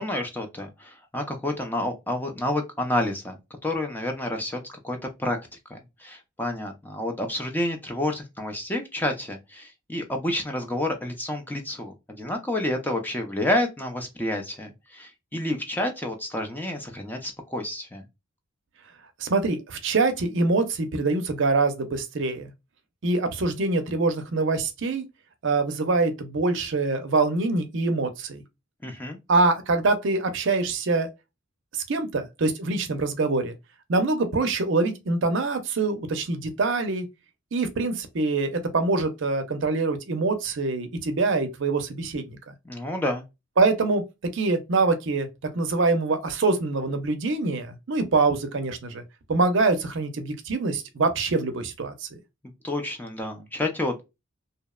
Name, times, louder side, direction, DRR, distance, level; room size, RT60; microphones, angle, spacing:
voice 1, 0.0-3.4 3.6-5.4 5.7-18.0 28.8-29.2 42.7-43.2 52.6-54.0, left 1 dB, 10° left, 0.4 m, -29 dB
voice 2, 19.2-22.5 23.0-25.0 25.4-28.4 29.3-31.1 31.7-33.6 33.9-37.1 37.5-42.4 43.6-44.0 44.3-45.3 45.5-49.0 49.3-52.1, right 3 dB, 55° right, 0.5 m, -24 dB
2.7 x 2.0 x 2.2 m
head